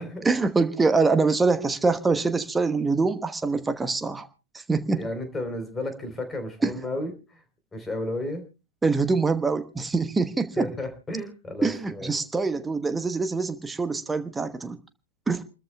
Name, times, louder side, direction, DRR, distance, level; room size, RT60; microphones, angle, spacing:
voice 1, 0.2-4.3 4.5-5.0 6.6-6.7 8.8-10.7 11.6-14.8 15.3-15.4, right 4 dB, 10° right, 1.1 m, -24 dB
voice 2, 5.0-7.4 7.7-8.4 10.6-12.1, left 1 dB, 15° left, 3.5 m, -33 dB
29.0 x 13.5 x 2.2 m
figure-of-eight pair, 90°, 0 cm